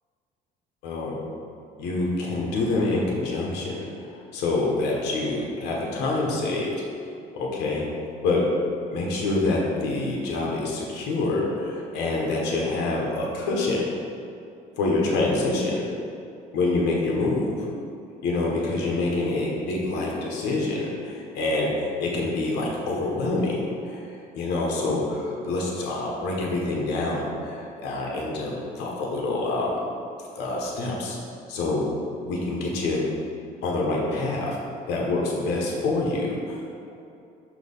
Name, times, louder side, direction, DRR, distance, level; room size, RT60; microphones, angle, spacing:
voice 1, 0.8-1.2 1.8-6.8 7.3-7.9 8.2-8.5 8.9-13.9 14.8-15.8 16.5-17.7 18.2-24.1 24.3-29.8 30.3-31.2 31.5-31.9 32.2-33.1 33.6-34.6 34.9-36.6, left 2 dB, 90° left, -3 dB, 1.1 m, -26 dB
6.2 x 3.0 x 5.4 m, 2.6 s
cardioid pair, 110°, 17 cm